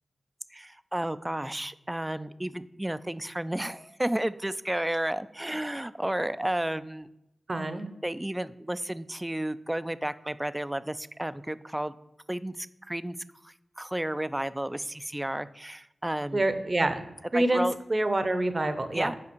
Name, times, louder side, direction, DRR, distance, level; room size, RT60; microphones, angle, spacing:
voice 1, 0.5-7.1 8.0-11.9 12.3-13.2 13.4-16.4 17.3-17.8 18.9-19.2, right 1 dB, 15° right, 14 dB, 0.4 m, -32 dB
voice 2, 7.5-7.9 16.3-17.0 17.3-19.2, right 1 dB, 40° right, 9 dB, 0.7 m, -26 dB
6.0 x 4.9 x 4.5 m, 0.86 s
cardioid pair, 45°, 0 cm